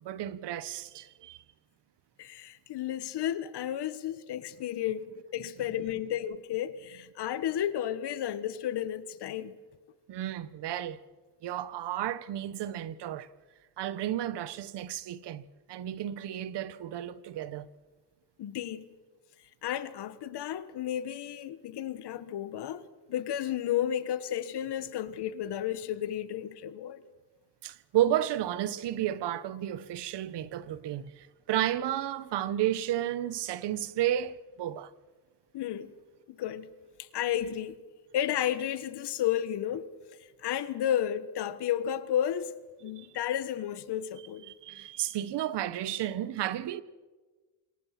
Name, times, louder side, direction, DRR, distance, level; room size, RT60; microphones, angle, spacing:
voice 1, 0.0-1.4 10.1-11.0 11.4-13.3 13.8-17.7 27.6-34.9 43.0-43.1 44.5-46.8, right 12 dB, 80° right, 1.1 m, -32 dB
voice 2, 2.2-9.6 18.4-18.8 19.6-22.8 23.1-27.0 35.5-35.9 36.3-36.7 37.0-37.8 38.1-39.9 40.4-42.5 42.8-44.5, left 10 dB, 75° left, 1.4 m, -32 dB
27.0 x 22.0 x 5.9 m
cardioid pair, 110°, 41 cm